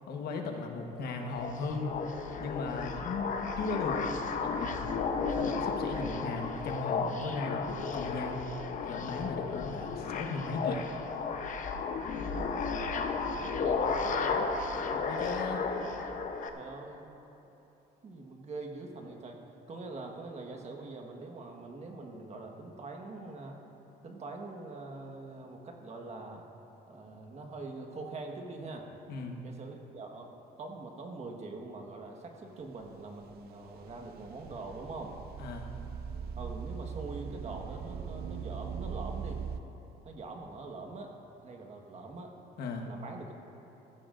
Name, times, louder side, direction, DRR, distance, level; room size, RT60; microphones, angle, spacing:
voice 1, 0.1-2.0 2.4-4.0 4.3-4.9 5.3-8.4 8.9-10.9 14.9-15.6 29.1-29.4 35.4-35.7 42.6-42.9, left 4 dB, 70° left, 2 dB, 1.3 m, -37 dB
sound 1, 1.2-16.5, left 5 dB, 50° left, 0.9 m, -34 dB
voice 2, 13.3-14.5 16.5-17.1 18.0-19.4 19.7-23.6 24.0-26.5 26.9-28.9 29.4-30.3 30.6-35.2 36.4-39.4 40.0-41.1 41.4-42.3 42.8-43.3, right 3 dB, 40° right, 2 dB, 1.5 m, -43 dB
sound 2, 32.8-39.6, right 6 dB, 65° right, 0.6 m, -40 dB
16.0 x 14.5 x 2.6 m, 3.0 s
cardioid pair, 110°, 17 cm